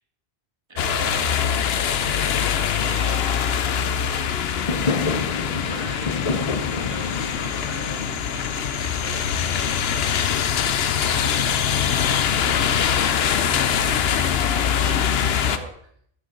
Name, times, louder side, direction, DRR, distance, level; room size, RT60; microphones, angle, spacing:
voice 1, 0.7-4.9 5.6-10.4 11.1-15.7, right 2 dB, 25° right, 4 dB, 1.5 m, -41 dB
sound 1, 0.8-15.6, left 8 dB, 75° left, 0.9 m, -23 dB
Fireworks, 4.5-9.7, left 4 dB, 40° left, 0.7 m, -29 dB
14.5 x 8.2 x 3.8 m, 0.65 s
omnidirectional pair, 1.0 m